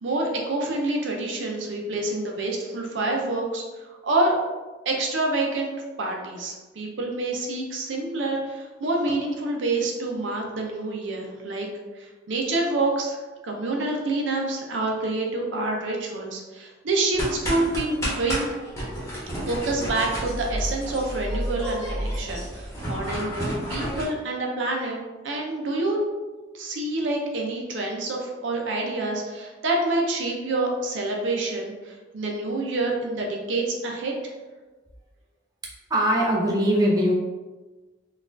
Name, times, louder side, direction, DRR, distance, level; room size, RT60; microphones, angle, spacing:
voice 1, 0.0-4.4 4.8-5.7 6.0-11.7 11.9-18.5 19.4-25.0 25.2-26.0 26.5-34.1, right 2 dB, 75° right, 0 dB, 0.6 m, -27 dB
sound 1, 17.1-24.0, equal, 15° left, 1.0 m, -31 dB
voice 2, 35.9-37.1, equal, 20° right, -3 dB, 0.6 m, -21 dB
3.9 x 2.4 x 2.6 m, 1.3 s
head